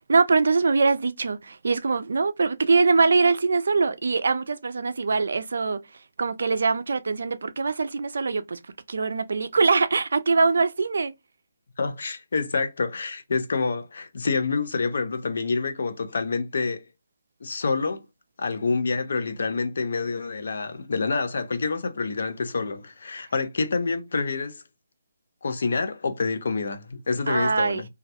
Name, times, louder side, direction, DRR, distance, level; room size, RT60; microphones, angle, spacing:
voice 1, 0.1-5.8 6.2-8.6 8.9-11.1 27.3-27.8, right 4 dB, 70° right, 0.3 m, -23 dB
voice 2, 11.8-16.8 17.4-18.0 18.4-24.6 25.4-27.9, left 4 dB, 65° left, 0.5 m, -27 dB
2.3 x 2.1 x 2.6 m
hypercardioid pair, 165°, 0 cm